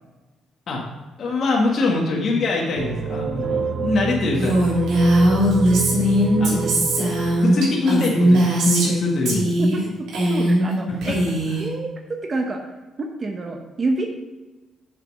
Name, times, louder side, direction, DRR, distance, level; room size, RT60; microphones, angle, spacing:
voice 1, 1.2-4.5 6.4-6.6 7.1-9.5 10.9-11.0, left 3 dB, 55° left, -2 dB, 1.5 m, -23 dB
sound 1, 2.8-8.9, right 5 dB, 55° right, 0.5 m, -28 dB
Female speech woman speaking, 4.4-9.0 9.3-9.8 10.1-10.7 11.0-11.7, equal, 80° right, 2.9 m, -19 dB
voice 2, 9.6-11.2 11.6-12.6 13.0-14.1, right 2 dB, 35° right, 3 dB, 0.9 m, -28 dB
6.8 x 6.7 x 5.2 m, 1.2 s
cardioid pair, 90°, 0 cm